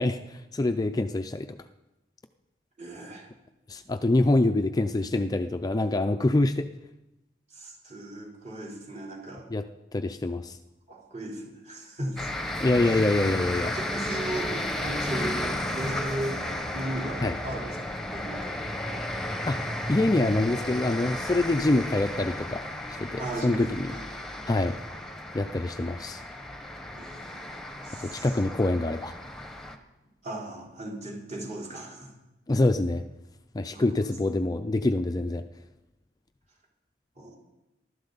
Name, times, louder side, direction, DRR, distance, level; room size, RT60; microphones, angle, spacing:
voice 1, 0.0-1.6 3.7-6.7 9.5-9.7 9.9-10.6 12.6-13.7 17.2-17.4 19.5-23.9 24.5-24.8 25.3-26.2 28.0-29.1 32.5-33.1 33.5-35.4, left 2 dB, 20° left, 8 dB, 0.4 m, -25 dB
voice 2, 2.8-3.3 7.5-9.5 10.9-12.3 12.8-13.1 13.7-16.4 16.7-17.8 18.1-18.6 23.2-24.0 26.9-28.3 30.2-32.1 33.7-34.1 37.2-37.4, right 1 dB, 40° right, -3 dB, 3.7 m, -37 dB
sound 1, 12.2-29.8, left 1 dB, ahead, 1.1 m, -34 dB
21.0 x 12.5 x 4.0 m, 0.97 s
head